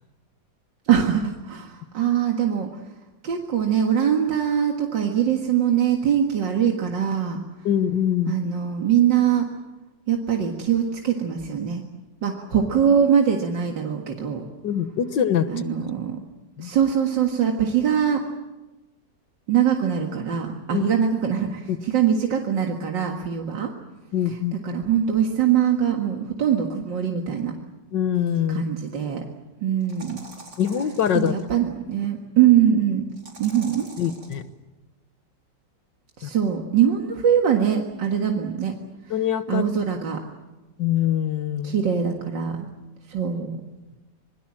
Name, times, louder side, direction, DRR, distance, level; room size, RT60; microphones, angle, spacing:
voice 1, 0.9-2.8 3.2-7.4 8.3-9.5 10.1-11.8 12.2-14.4 15.5-16.2 16.6-18.2 19.5-23.7 24.5-27.5 28.5-29.2 29.6-30.2 31.1-33.1 33.4-33.9 36.2-38.7 39.5-40.2 41.6-42.6 43.1-43.6, right 8 dB, 85° right, 2 dB, 2.5 m, -22 dB
voice 2, 7.7-8.4 14.6-15.5 16.6-16.7 20.7-20.8 21.7-21.8 24.1-24.5 27.9-28.6 30.6-31.4 34.0-34.4 36.2-36.3 39.1-39.6 40.8-41.8, left 9 dB, 80° left, 11 dB, 1.9 m, -23 dB
sound 1, 28.5-28.6 29.8-31.4 33.1-34.4, right 2 dB, 70° right, 5.0 m, -45 dB
27.0 x 21.5 x 7.5 m, 1.1 s
omnidirectional pair, 1.9 m